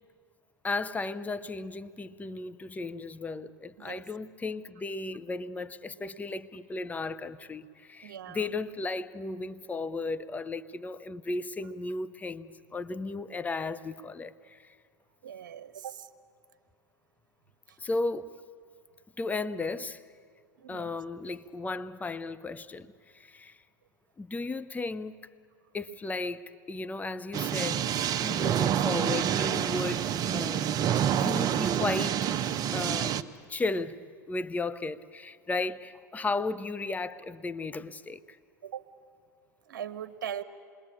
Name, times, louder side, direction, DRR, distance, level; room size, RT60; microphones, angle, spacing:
voice 1, 0.6-14.8 17.8-18.3 19.2-20.0 20.7-23.6 24.2-25.2 25.7-27.9 28.2-30.7 31.1-32.3 32.7-34.0 34.3-38.4, left 3 dB, 15° left, 0.8 m, -35 dB
voice 2, 8.0-8.4 15.2-16.1 20.6-20.9 38.6-38.8 39.7-40.4, right 9 dB, 75° right, 1.3 m, -39 dB
sound 1, 27.3-33.2, right 9 dB, 35° right, 0.9 m, -28 dB
27.5 x 21.5 x 8.7 m
hypercardioid pair, 95°, 11 cm